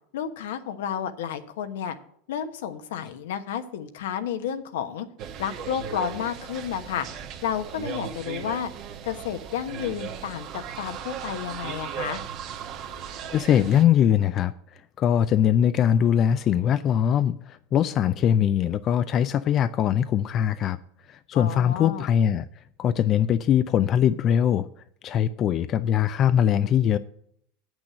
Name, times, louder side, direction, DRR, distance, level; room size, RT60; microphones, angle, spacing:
voice 1, 0.1-2.0 2.3-5.1 5.4-7.1 7.4-8.7 9.0-12.2 21.3-22.1, left 9 dB, 80° left, 1.1 m, -31 dB
sound 1, 5.2-13.8, right 8 dB, 50° right, 1.3 m, -37 dB
voice 2, 13.3-14.5 15.0-20.8 21.1-22.5 22.8-24.7 25.0-27.0, left 9 dB, 40° left, 0.4 m, -21 dB
8.3 x 6.2 x 7.5 m
supercardioid pair, 115°, 0 cm